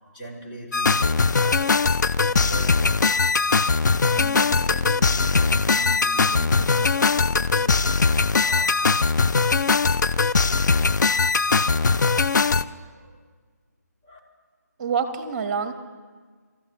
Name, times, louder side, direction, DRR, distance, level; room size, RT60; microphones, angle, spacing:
voice 1, 0.0-1.9 2.2-9.5 11.7-13.2 14.0-14.2, right 1 dB, 30° left, 2.6 m, -41 dB
sound 1, 0.7-12.6, left 4 dB, 80° left, 0.5 m, -20 dB
voice 2, 14.8-15.7, right 6 dB, 30° right, 1.4 m, -26 dB
27.0 x 14.5 x 3.1 m
hypercardioid pair, 160°, 10 cm